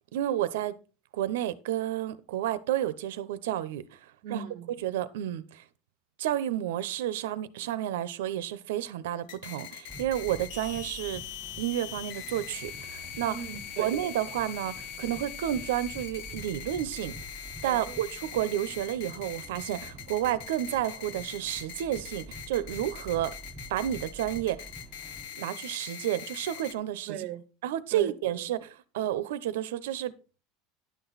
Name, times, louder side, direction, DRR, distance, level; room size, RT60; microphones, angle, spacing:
voice 1, 0.1-0.8 1.1-4.4 4.8-5.6 6.2-11.2 11.6-13.4 13.8-17.1 17.6-23.3 23.7-24.7 25.3-27.2 27.6-30.1, right 12 dB, 85° right, 0.6 m, -31 dB
voice 2, 4.2-4.8 13.3-13.9 17.7-18.0 27.1-27.5 27.9-28.4, right 8 dB, 40° right, 0.6 m, -39 dB
sound 1, 9.3-26.7, left 10 dB, 50° left, 0.7 m, -42 dB
sound 2, 9.9-25.2, right 2 dB, ahead, 1.4 m, -48 dB
10.5 x 6.0 x 4.0 m
supercardioid pair, 180°, 0 cm